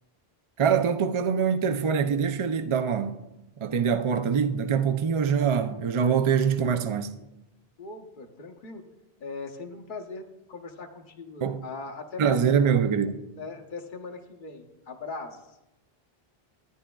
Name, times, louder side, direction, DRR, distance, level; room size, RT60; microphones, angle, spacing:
voice 1, 0.6-3.3 3.6-7.1 11.4-11.6 12.2-13.2, right 7 dB, 50° right, 0.4 m, -24 dB
voice 2, 7.8-8.8 9.2-12.7 13.4-15.6, left 3 dB, 55° left, 1.1 m, -40 dB
14.0 x 9.8 x 2.3 m
omnidirectional pair, 1.0 m